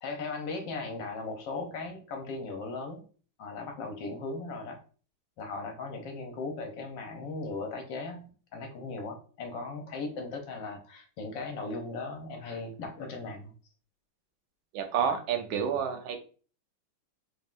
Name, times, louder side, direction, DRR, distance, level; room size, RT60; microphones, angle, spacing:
voice 1, 0.0-3.0 3.4-4.8 5.4-13.5 15.5-15.6, left 3 dB, 70° left, 4 dB, 1.4 m, -38 dB
voice 2, 14.7-16.2, right 7 dB, 90° right, 6 dB, 1.5 m, -29 dB
4.1 x 3.5 x 2.4 m, 0.39 s
omnidirectional pair, 2.2 m